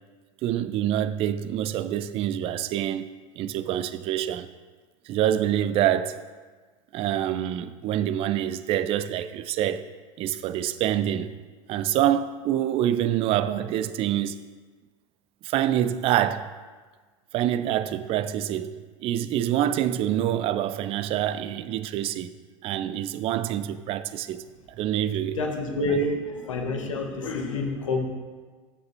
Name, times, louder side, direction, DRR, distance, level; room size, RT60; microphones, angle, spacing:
voice 1, 0.4-3.1 3.4-4.5 5.1-6.2 6.9-9.9 10.2-11.3 11.7-14.4 15.4-16.5 17.3-22.3 22.6-24.5 24.8-25.4, right 11 dB, 35° right, 0.4 m, -26 dB
voice 2, 25.3-28.0, left 2 dB, 65° left, 1.2 m, -28 dB
12.5 x 6.6 x 2.8 m
figure-of-eight pair, 80°, 18 cm